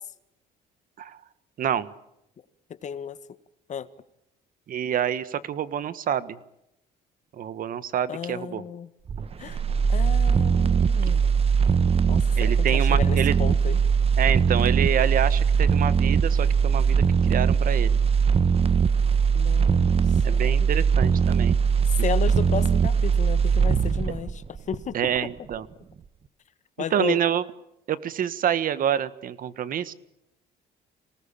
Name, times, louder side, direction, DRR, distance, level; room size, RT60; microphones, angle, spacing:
voice 1, 1.6-1.9 4.7-6.4 7.4-8.6 12.4-13.3 14.2-18.0 20.2-21.6 24.9-25.7 26.9-27.4 27.9-29.9, right 9 dB, 55° right, 1.5 m, -27 dB
voice 2, 2.8-3.2 3.7-3.9 8.1-8.9 9.4-9.6 9.9-11.3 12.1-13.8 19.3-20.0 20.3-20.7 21.9-25.3 26.8-27.2, left 8 dB, 45° left, 1.5 m, -33 dB
sound 1, 9.1-25.2 25.5-25.6, right 6 dB, 35° right, 1.3 m, -21 dB
26.0 x 19.0 x 8.8 m
cardioid pair, 110°, 17 cm